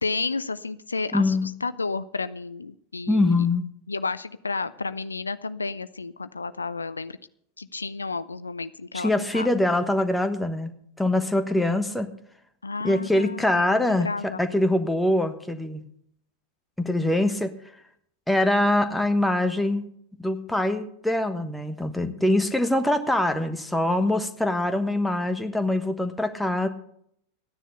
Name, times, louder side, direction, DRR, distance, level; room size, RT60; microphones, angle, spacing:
voice 1, 0.0-3.5 3.9-7.2 7.6-9.5 12.6-14.4, left 4 dB, 80° left, 14 dB, 0.5 m, -32 dB
voice 2, 1.1-1.4 3.1-3.7 8.9-10.7 11.0-12.1 12.8-15.8 16.8-17.5 18.3-19.9 20.2-26.7, left 1 dB, 5° left, 7 dB, 1.3 m, -23 dB
14.0 x 10.0 x 6.7 m, 0.69 s
figure-of-eight pair, 90°, 0 cm